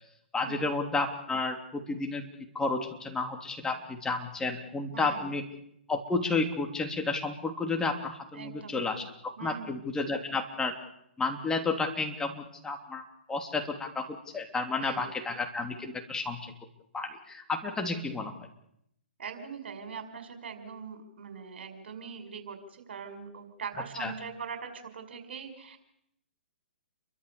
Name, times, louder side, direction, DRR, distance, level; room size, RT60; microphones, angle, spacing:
voice 1, 0.3-2.2 2.5-5.4 5.9-10.7 11.2-16.5 16.9-18.3 24.0-24.1, left 3 dB, 10° left, 4 dB, 3.2 m, -32 dB
voice 2, 4.9-5.3 8.3-9.1 9.4-9.7 14.8-15.1 19.2-25.8, right 6 dB, 65° right, 7 dB, 5.8 m, -42 dB
29.0 x 23.5 x 7.0 m, 0.76 s
hypercardioid pair, 130°, 6 cm